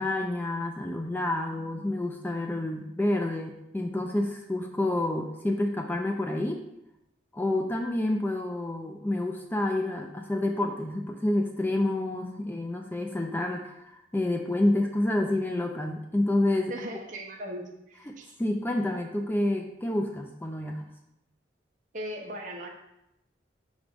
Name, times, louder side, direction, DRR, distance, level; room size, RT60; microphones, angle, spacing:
voice 1, 0.0-6.6 7.3-16.7 18.1-20.8, left 1 dB, 10° left, 3 dB, 0.4 m, -28 dB
voice 2, 16.7-18.3 21.9-22.7, equal, 45° right, 1 dB, 1.0 m, -38 dB
6.2 x 3.3 x 5.0 m, 0.84 s
head